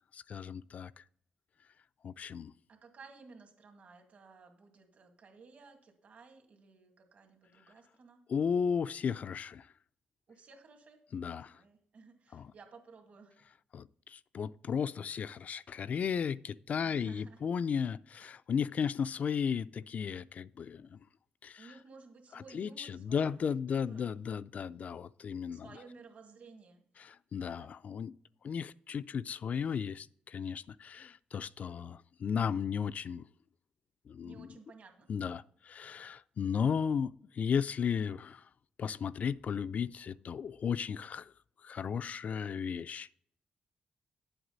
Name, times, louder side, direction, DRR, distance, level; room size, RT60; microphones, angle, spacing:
voice 1, 0.1-1.0 2.0-2.5 8.3-9.7 11.1-11.6 12.3-12.5 13.7-21.0 21.4-21.7 22.5-25.7 27.0-28.1 28.4-33.2 34.1-34.5 35.1-38.4 38.8-41.3 41.6-43.1, left 7 dB, 55° left, 0.3 m, -35 dB
voice 2, 2.7-8.2 10.3-13.3 16.8-17.4 21.6-24.1 25.5-26.8 27.4-27.7 34.2-35.1, right 4 dB, 55° right, 2.1 m, -56 dB
10.0 x 8.0 x 4.0 m
cardioid pair, 95°, 3 cm